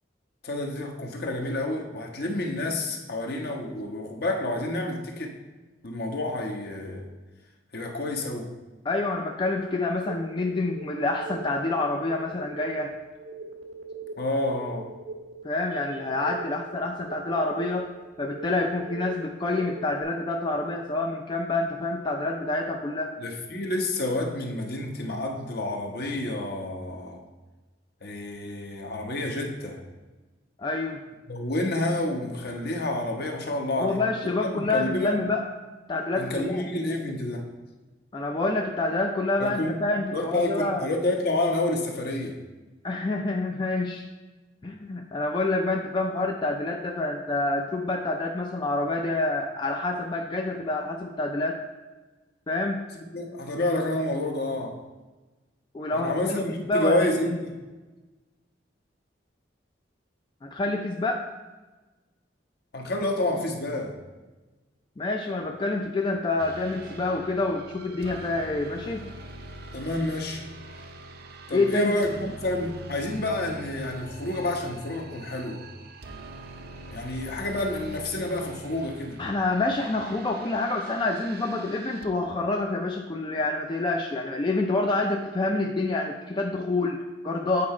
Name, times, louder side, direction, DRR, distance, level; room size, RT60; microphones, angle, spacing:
voice 1, 0.4-5.4 5.8-7.1 7.7-8.5 14.2-14.9 23.2-27.2 28.0-29.8 31.3-35.2 36.2-37.5 39.4-39.8 40.1-42.4 53.1-54.8 55.9-57.6 62.7-64.0 69.7-70.5 71.5-75.6 76.9-79.2, left 1 dB, 55° left, 2 dB, 1.0 m, -29 dB
voice 2, 8.8-12.9 15.4-23.1 30.6-31.0 33.8-35.4 35.9-36.6 38.1-40.9 42.8-44.0 44.6-51.6 52.5-52.8 55.7-57.4 60.4-61.3 65.0-69.0 71.5-71.9 79.2-87.7, left 2 dB, 25° left, 2 dB, 0.4 m, -27 dB
sound 1, 10.0-20.0, right 3 dB, 85° right, 1.2 m, -41 dB
sound 2, 66.4-82.1, right 2 dB, 55° right, 0.6 m, -43 dB
8.5 x 4.8 x 4.3 m, 1.2 s
head